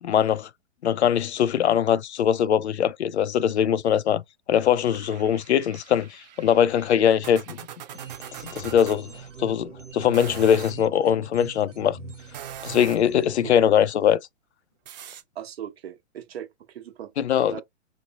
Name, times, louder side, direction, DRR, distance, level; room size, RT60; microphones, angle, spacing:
voice 1, 0.0-0.5 0.8-4.2 4.5-7.6 8.5-9.1 9.4-12.0 12.6-14.2 17.2-17.6, left 9 dB, 65° left, 0.5 m, -21 dB
sound 1, 4.9-9.0 10.0-10.8 12.2-13.2 14.9-15.2, right 10 dB, 35° right, 0.7 m, -42 dB
sound 2, 7.9-13.6, right 4 dB, 85° right, 1.0 m, -43 dB
voice 2, 15.3-17.1 17.5-17.6, right 10 dB, 55° right, 1.1 m, -39 dB
3.1 x 2.1 x 4.0 m
figure-of-eight pair, 115°, 36 cm